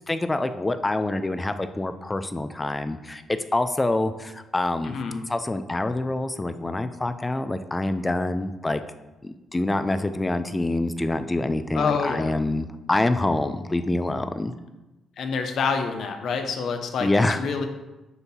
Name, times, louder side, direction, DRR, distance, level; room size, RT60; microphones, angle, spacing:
voice 1, 0.1-4.9 5.3-8.8 9.2-14.5 17.0-17.4, left 2 dB, 15° left, 10 dB, 0.4 m, -26 dB
voice 2, 4.8-5.2 11.7-12.3 15.2-17.1 17.4-17.7, left 5 dB, 65° left, 5 dB, 0.8 m, -27 dB
8.0 x 2.7 x 5.5 m, 1.1 s
cardioid pair, 90°, 0 cm